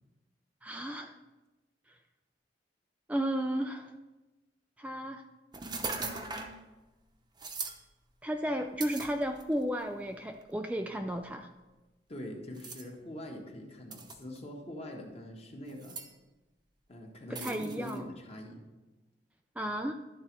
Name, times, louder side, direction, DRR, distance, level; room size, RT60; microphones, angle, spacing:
voice 1, 0.6-1.1 3.1-3.9 4.8-5.2 8.2-11.5 17.3-18.1 19.6-19.9, equal, 10° right, 4 dB, 0.4 m, -33 dB
sound 1, 5.5-6.6 7.4-7.8 8.8-9.6 10.4-10.5 12.6-12.8 13.9-14.4 15.7-16.1 17.4-18.0, right 4 dB, 25° right, 0.8 m, -39 dB
voice 2, 12.1-16.0 16.9-18.6, left 1 dB, 35° left, 1 dB, 1.4 m, -43 dB
11.5 x 4.1 x 6.0 m, 1.1 s
head